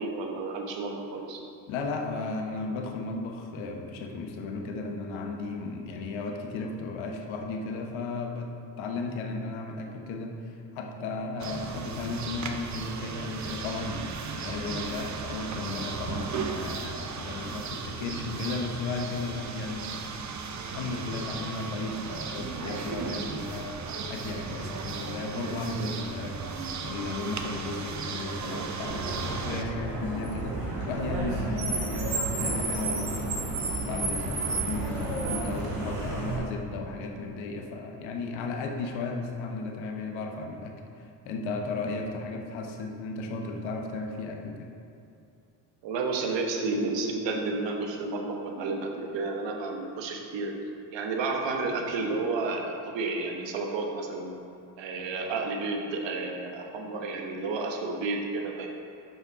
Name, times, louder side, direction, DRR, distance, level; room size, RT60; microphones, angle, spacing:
voice 1, 0.0-1.4 32.7-33.0 45.8-50.5 50.9-54.3 54.8-58.7, right 3 dB, 65° right, 2 dB, 1.3 m, -31 dB
voice 2, 1.7-8.5 8.8-10.3 10.7-14.0 14.3-19.9 20.7-23.8 24.1-33.5 33.8-44.7, left 3 dB, 70° left, 3 dB, 1.1 m, -35 dB
sound 1, 11.4-29.6, right 5 dB, 35° right, 0.8 m, -36 dB
Car, 28.8-36.4, right 2 dB, 90° right, 1.9 m, -31 dB
7.8 x 5.8 x 4.9 m, 2.6 s
hypercardioid pair, 60°, 48 cm